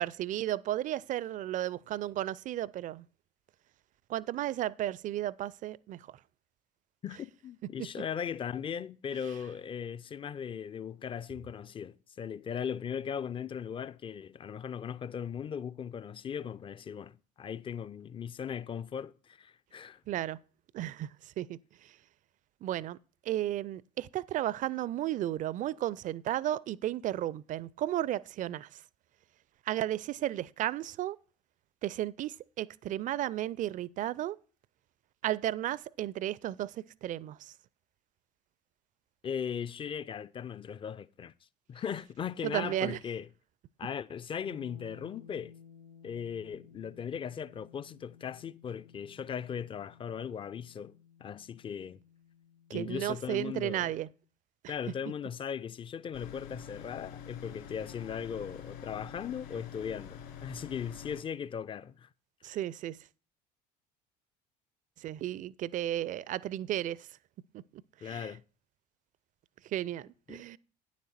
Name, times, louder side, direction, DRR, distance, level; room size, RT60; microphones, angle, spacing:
voice 1, 0.0-3.1 4.1-6.2 20.1-20.4 20.7-22.0 22.6-23.0 23.2-28.8 29.7-31.2 31.8-34.4 35.2-37.5 42.4-43.0 52.7-54.1 62.4-63.0 65.0-67.1 67.5-68.3 69.6-70.6, right 13 dB, 40° right, 0.4 m, -34 dB
voice 2, 7.0-20.0 39.2-41.3 41.7-43.3 43.8-45.5 46.0-52.0 52.7-53.9 54.7-62.1 68.0-68.4 70.3-70.4, left 7 dB, 25° left, 0.4 m, -38 dB
sound 1, 44.4-54.2, left 7 dB, 80° left, 2.8 m, -57 dB
sound 2, 56.1-61.2, left 8 dB, 60° left, 2.7 m, -46 dB
9.7 x 7.4 x 4.2 m
figure-of-eight pair, 65°, 21 cm